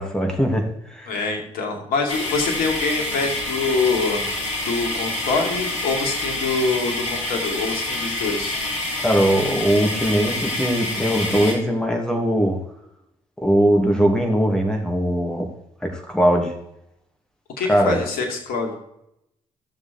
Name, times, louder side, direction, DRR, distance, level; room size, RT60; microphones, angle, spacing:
voice 1, 0.0-1.1 9.0-12.6 13.4-15.5 15.8-16.5 17.7-18.0, equal, 5° left, 1 dB, 2.9 m, -20 dB
voice 2, 1.1-4.4 4.7-8.6 17.6-18.7, left 4 dB, 65° left, 3 dB, 2.4 m, -25 dB
sound 1, 2.1-11.5, left 2 dB, 85° left, 2.2 m, -27 dB
13.5 x 6.8 x 4.5 m, 0.81 s
figure-of-eight pair, 45°, 16 cm